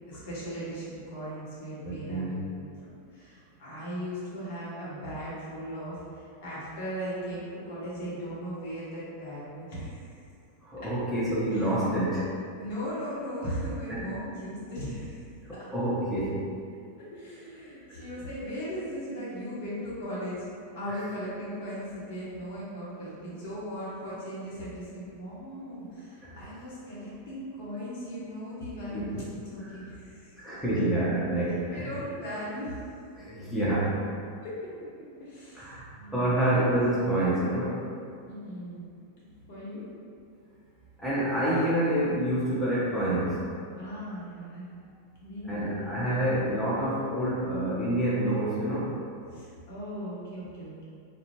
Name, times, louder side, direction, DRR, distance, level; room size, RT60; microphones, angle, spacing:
voice 1, 0.1-10.1 10.8-10.9 11.5-11.8 12.6-15.2 15.5-15.7 17.0-20.5 20.8-29.0 29.5-30.8 31.7-32.8 34.4-34.5 35.2-36.6 38.2-38.8 39.5-39.9 43.8-44.7 45.2-46.0 49.3-50.8, equal, 50° left, -8 dB, 0.9 m, -38 dB
voice 2, 1.8-2.3 10.6-12.3 13.9-14.0 15.5-16.4 17.9-18.0 20.9-21.0 26.2-26.3 28.9-29.2 29.6-29.8 30.4-32.0 33.2-33.9 35.5-35.9 36.1-37.8 41.0-43.4 45.4-48.9, right 1 dB, 5° left, -10 dB, 0.6 m, -27 dB
2.5 x 2.1 x 3.0 m, 2.4 s
figure-of-eight pair, 90°, 0 cm